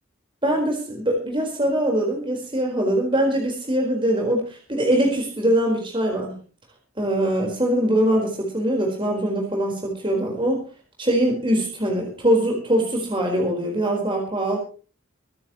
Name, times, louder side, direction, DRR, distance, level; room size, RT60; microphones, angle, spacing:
voice 1, 0.4-6.3 7.0-10.6 11.0-14.6, right 1 dB, 25° right, 1 dB, 4.5 m, -22 dB
25.0 x 11.5 x 3.1 m, 0.38 s
head